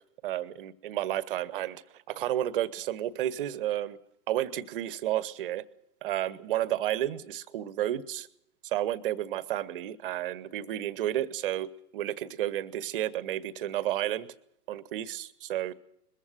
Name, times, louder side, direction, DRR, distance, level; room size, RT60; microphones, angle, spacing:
voice 1, 0.2-4.0 4.3-5.6 6.0-8.3 8.6-14.3 14.7-15.7, right 12 dB, 35° right, 20 dB, 1.0 m, -31 dB
21.5 x 14.5 x 9.4 m, 0.75 s
figure-of-eight pair, 115°, 49 cm